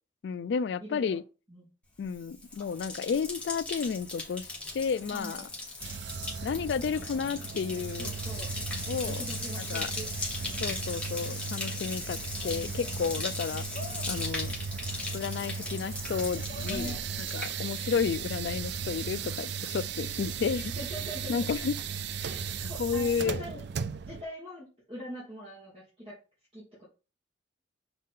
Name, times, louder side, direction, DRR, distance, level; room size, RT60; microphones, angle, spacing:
voice 1, 0.2-1.2 2.0-5.4 6.4-8.1 8.9-9.2 9.6-9.9 10.6-12.2 12.4-13.6 14.1-14.5 15.1-20.7 21.3-21.7 22.8-23.4, left 6 dB, 60° left, 0.3 m, -32 dB
voice 2, 0.8-1.2 1.5-1.7 5.1-5.4 8.0-8.5 9.0-10.1 10.5-11.0 12.5-13.1 16.7-17.0 20.7-21.5 22.2-23.6 24.0-26.2 26.5-26.9, equal, 30° right, 2.9 m, -43 dB
Bathtub (filling or washing), 2.0-18.1 18.4-18.9, left 2 dB, 5° left, 1.2 m, -38 dB
sound 1, 5.8-24.2, right 6 dB, 60° right, 0.4 m, -37 dB
sound 2, 11.3-17.5, left 3 dB, 35° left, 0.9 m, -50 dB
6.4 x 4.0 x 3.7 m
head